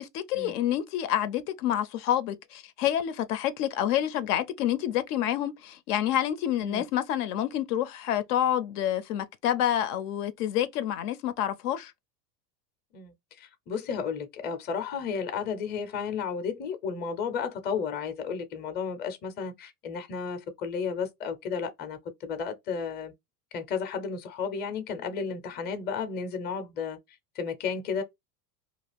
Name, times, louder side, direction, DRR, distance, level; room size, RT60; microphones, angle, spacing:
voice 1, 0.0-11.9, left 11 dB, 65° left, 0.6 m, -28 dB
voice 2, 12.9-23.1 23.5-27.0 27.4-28.0, left 6 dB, 20° left, 0.5 m, -33 dB
2.4 x 2.4 x 3.3 m
hypercardioid pair, 115°, 49 cm